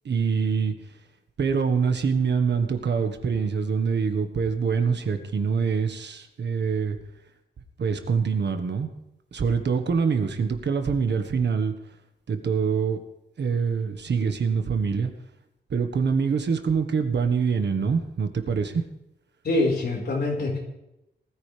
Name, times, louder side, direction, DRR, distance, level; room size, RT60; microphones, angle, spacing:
voice 1, 0.0-0.7 1.4-7.0 7.8-8.9 9.3-11.7 12.3-13.0 13.4-15.1 15.7-18.8, right 5 dB, 75° right, 7 dB, 1.5 m, -25 dB
voice 2, 19.4-20.6, left 2 dB, 65° left, -1 dB, 4.8 m, -24 dB
20.0 x 14.5 x 3.4 m, 0.88 s
wide cardioid pair, 180°, 18 cm